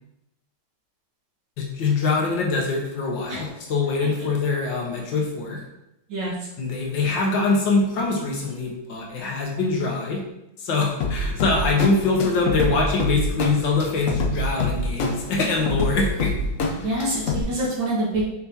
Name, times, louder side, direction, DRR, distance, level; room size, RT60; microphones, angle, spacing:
voice 1, 1.6-5.6 6.6-10.2 10.6-16.3, left 3 dB, 60° left, 0 dB, 1.8 m, -23 dB
sound 1, 11.0-17.4, left 2 dB, 80° left, 0.7 m, -26 dB
voice 2, 16.8-18.2, right 1 dB, 65° right, -4 dB, 2.1 m, -26 dB
7.0 x 5.5 x 2.8 m, 0.88 s
omnidirectional pair, 2.3 m